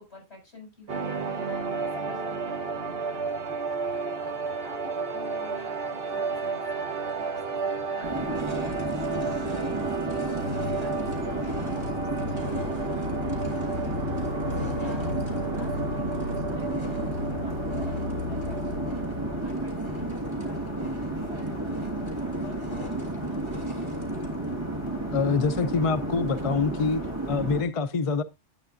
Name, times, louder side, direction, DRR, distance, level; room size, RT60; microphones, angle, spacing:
voice 1, 0.0-18.0 18.2-23.8, left 2 dB, 60° left, 7.3 m, -50 dB
sound 1, 0.9-19.5, right 3 dB, 55° right, 1.3 m, -32 dB
sound 2, 7.1-7.2 7.7-24.5, left 1 dB, 25° left, 3.0 m, -47 dB
sound 3, 8.0-27.6, right 1 dB, 25° right, 1.7 m, -32 dB
voice 2, 25.1-27.0 27.3-28.2, left 4 dB, 40° left, 0.5 m, -25 dB
11.0 x 8.8 x 2.5 m
omnidirectional pair, 1.2 m